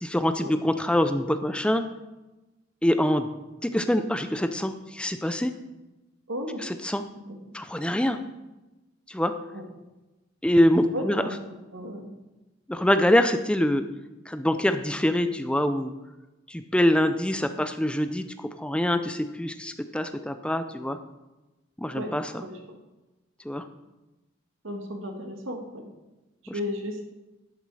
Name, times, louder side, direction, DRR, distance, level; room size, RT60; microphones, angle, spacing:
voice 1, 0.0-1.8 2.8-3.3 3.6-5.5 6.6-7.0 7.5-8.2 9.1-9.4 10.4-11.2 12.7-13.8 14.3-15.9 16.5-21.0 21.8-22.3 23.4-23.6, left 1 dB, 5° left, 9 dB, 0.5 m, -24 dB
voice 2, 6.3-6.6 7.1-7.4 9.5-9.7 10.9-12.2 21.9-22.1 22.4-22.8 24.6-25.9 26.5-27.0, equal, 80° right, 3 dB, 1.8 m, -35 dB
11.5 x 7.1 x 4.9 m, 1.1 s
head